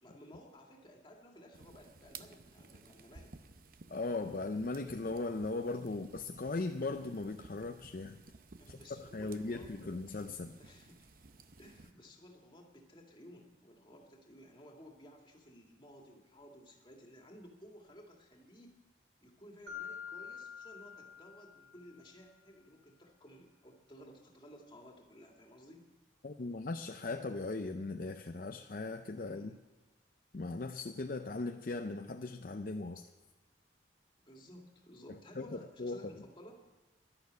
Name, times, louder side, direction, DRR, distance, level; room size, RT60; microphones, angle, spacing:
voice 1, 0.0-3.3 5.9-6.0 8.6-9.9 10.6-11.1 11.6-18.8 19.2-25.8 29.2-29.6 34.2-36.6, equal, 25° left, 1 dB, 2.2 m, -56 dB
sound 1, 1.5-11.9, right 4 dB, 50° right, 0.7 m, -56 dB
voice 2, 3.9-8.2 8.7-10.6 26.2-29.6 30.3-33.1 35.1-36.0, left 3 dB, 50° left, 6 dB, 0.5 m, -38 dB
Mallet percussion, 19.7-22.2, left 7 dB, 65° right, 2.2 m, -47 dB
11.5 x 11.5 x 8.2 m, 1.1 s
head